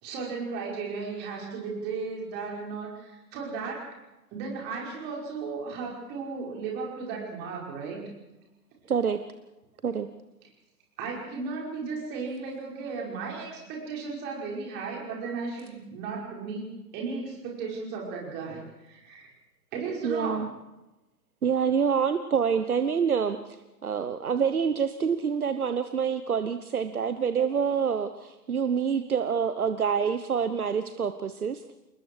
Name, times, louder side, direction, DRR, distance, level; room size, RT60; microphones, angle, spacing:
voice 1, 0.0-3.9 4.3-8.0 11.0-19.3 19.7-20.5, right 4 dB, 20° right, -2 dB, 5.5 m, -35 dB
voice 2, 8.9-9.2 9.8-10.1 20.0-20.5 21.4-23.6 23.8-31.6, right 6 dB, 60° right, 11 dB, 1.2 m, -26 dB
28.0 x 21.0 x 4.8 m, 0.99 s
figure-of-eight pair, 130°, 48 cm